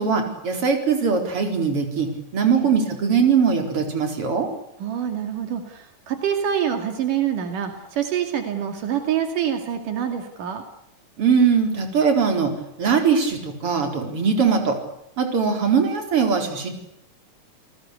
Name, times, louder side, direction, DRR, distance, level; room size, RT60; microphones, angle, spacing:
voice 1, 0.0-4.5 11.2-12.5 12.8-14.8 15.2-16.7, right 6 dB, 40° right, 4 dB, 5.0 m, -21 dB
voice 2, 4.8-10.6, right 9 dB, 75° right, 6 dB, 3.9 m, -26 dB
30.0 x 19.5 x 8.3 m, 0.79 s
omnidirectional pair, 3.7 m